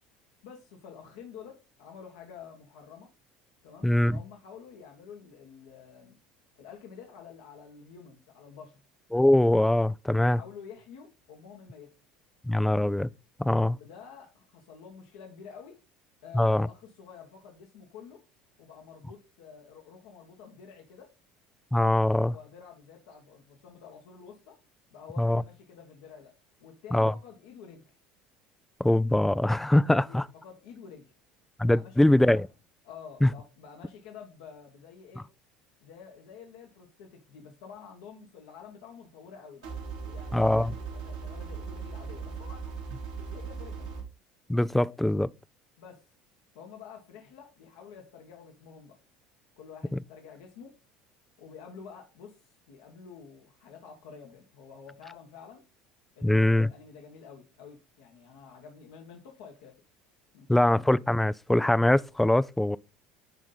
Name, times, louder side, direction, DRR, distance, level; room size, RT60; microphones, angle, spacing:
voice 1, 0.4-3.1 3.6-6.2 6.6-8.8 10.3-11.9 13.6-15.8 16.2-18.2 18.6-21.2 22.2-24.6 24.9-26.3 26.6-27.9 30.0-31.1 31.6-32.5 32.8-35.3 35.8-39.7 40.0-42.9 43.2-43.9 45.8-46.1 46.5-49.0 49.6-50.7 51.4-55.6 56.1-59.8 60.3-60.7, left 6 dB, 70° left, 1.4 m, -49 dB
voice 2, 3.8-4.2 9.1-10.4 12.5-13.1 13.4-13.8 16.3-16.7 21.7-22.3 25.2-25.4 26.9-27.1 28.8-30.3 31.6-32.5 33.2-33.3 40.3-40.7 44.5-45.3 56.2-56.7 60.5-62.8, left 1 dB, 5° left, 0.4 m, -23 dB
sound 1, 39.6-44.0, right 5 dB, 80° right, 2.7 m, -38 dB
11.0 x 3.7 x 3.9 m
hypercardioid pair, 70°, 3 cm